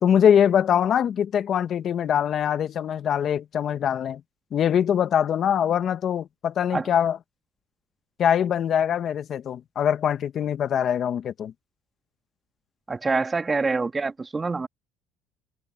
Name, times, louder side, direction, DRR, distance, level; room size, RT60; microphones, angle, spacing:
voice 1, 0.0-4.2 4.5-7.2 8.2-11.5, left 9 dB, 50° left, 1.4 m, -23 dB
voice 2, 12.9-14.7, right 4 dB, 20° right, 2.1 m, -26 dB
cardioid pair, 100°, 0 cm